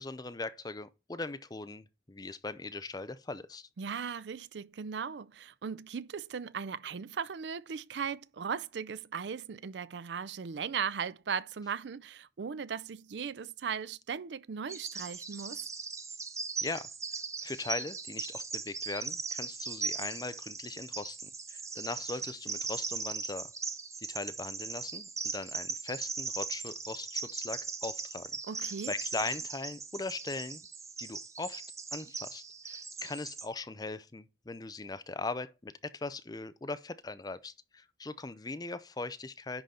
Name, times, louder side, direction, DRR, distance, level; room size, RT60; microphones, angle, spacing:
voice 1, 0.0-3.7 16.6-16.9 17.4-23.5 24.1-28.3 28.6-30.6 31.0-31.6 31.9-39.6, left 3 dB, 20° left, 0.5 m, -40 dB
voice 2, 3.8-15.6 28.5-28.9, right 6 dB, 75° right, 0.5 m, -37 dB
Bird vocalization bird call bird song, 14.7-33.5, right 4 dB, 15° right, 0.8 m, -39 dB
10.5 x 3.9 x 4.2 m
head